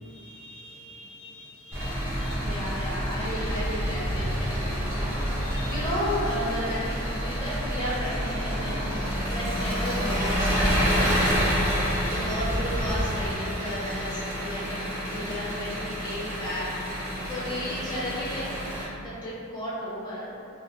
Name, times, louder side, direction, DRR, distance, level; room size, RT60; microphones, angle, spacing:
voice 1, 0.0-2.7 5.2-5.8 11.7-12.4, left 1 dB, 80° left, -3 dB, 0.5 m, -46 dB
Engine, 1.7-18.8, equal, 15° right, 0.8 m, -28 dB
voice 2, 2.1-8.9 9.3-11.3 11.8-16.7 17.2-18.5 19.0-20.3, equal, 20° left, -9 dB, 0.7 m, -34 dB
3.7 x 2.7 x 2.2 m, 2.5 s
head